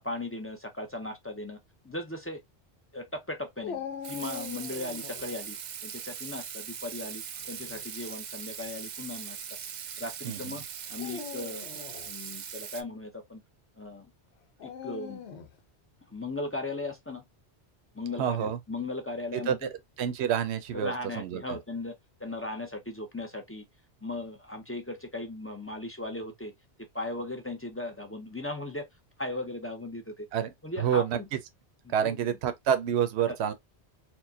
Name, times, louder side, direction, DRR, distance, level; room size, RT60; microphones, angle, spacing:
voice 1, 0.0-1.6 1.8-2.4 2.9-5.6 5.8-9.4 10.0-10.6 10.9-11.6 12.1-13.4 13.8-14.1 14.6-15.2 16.1-17.2 17.9-19.7 20.7-23.6 24.0-26.5 26.8-28.9 29.2-30.3 30.6-31.3 32.0-32.4 33.3-33.5, left 2 dB, 20° left, 0.4 m, -37 dB
Dog, 3.6-5.3 7.4-7.9 8.6-8.7 10.9-12.1 14.6-15.6, left 7 dB, 70° left, 1.0 m, -41 dB
Water tap faucet / Sink (filling or washing), 4.0-12.8, right 8 dB, 55° right, 0.5 m, -40 dB
voice 2, 18.2-18.6 19.3-19.7 20.0-21.6 30.3-30.5 30.8-31.2 31.9-33.5, right 9 dB, 75° right, 0.9 m, -28 dB
4.4 x 2.2 x 2.7 m
omnidirectional pair, 1.1 m